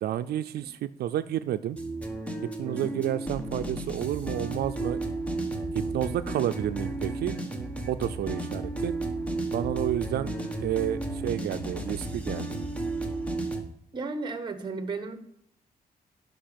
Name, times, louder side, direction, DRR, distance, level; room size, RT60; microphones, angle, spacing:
voice 1, 0.0-1.8 2.6-5.0 5.7-7.3 7.9-9.0 9.5-10.3 10.6-12.6, right 12 dB, 85° right, 11 dB, 0.4 m, -30 dB
sound 1, 1.7-13.6, right 2 dB, 10° left, 1.2 m, -33 dB
voice 2, 2.6-3.0 13.9-15.2, right 3 dB, 30° right, 9 dB, 1.2 m, -34 dB
11.5 x 5.4 x 5.1 m, 0.73 s
cardioid pair, 140°, 16 cm